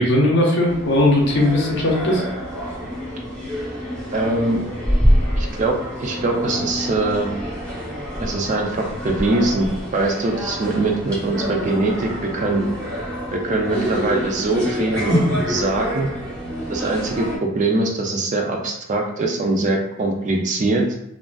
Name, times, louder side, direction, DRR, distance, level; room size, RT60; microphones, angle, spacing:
voice 1, 0.0-2.2, left 1 dB, 55° left, -1 dB, 0.6 m, -18 dB
sound 1, 0.7-17.4, equal, 5° left, 0.7 m, -26 dB
voice 2, 4.1-4.6 5.4-7.3 8.2-12.6 13.3-15.2 15.5-16.1 16.7-20.8, right 2 dB, 35° right, 1 dB, 0.3 m, -22 dB
2.4 x 2.4 x 2.2 m, 0.81 s
head